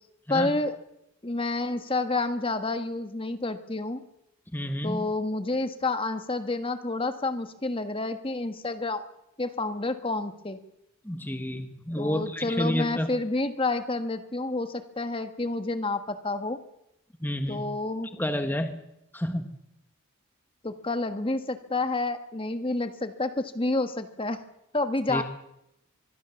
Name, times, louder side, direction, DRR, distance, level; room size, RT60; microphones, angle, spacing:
voice 1, 0.3-0.8 1.2-4.0 4.8-9.0 9.4-10.6 12.0-16.6 17.5-18.1 20.6-24.4 24.7-25.2, left 2 dB, 25° left, 9 dB, 1.5 m, -29 dB
voice 2, 4.5-5.1 11.0-13.1 17.2-17.6 18.2-18.8 19.1-19.5 25.1-25.2, equal, 10° left, 7 dB, 1.5 m, -30 dB
25.0 x 22.0 x 7.1 m, 0.83 s
head